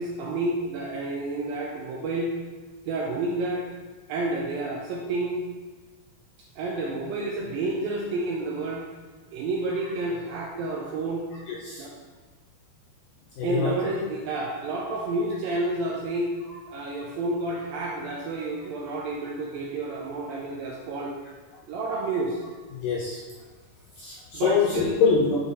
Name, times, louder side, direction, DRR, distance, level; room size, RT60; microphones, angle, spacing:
voice 1, 0.0-2.3 2.9-3.6 4.1-5.4 6.6-8.9 9.3-11.2 11.8-11.9 13.4-16.4 16.7-21.1 21.7-22.4 24.3-24.9, right 2 dB, 80° right, -2 dB, 2.1 m, -30 dB
voice 2, 11.5-11.8 13.4-13.8 22.7-23.2 24.0-25.4, left 5 dB, 75° left, -4 dB, 2.0 m, -24 dB
9.8 x 4.0 x 4.1 m, 1.4 s
omnidirectional pair, 4.8 m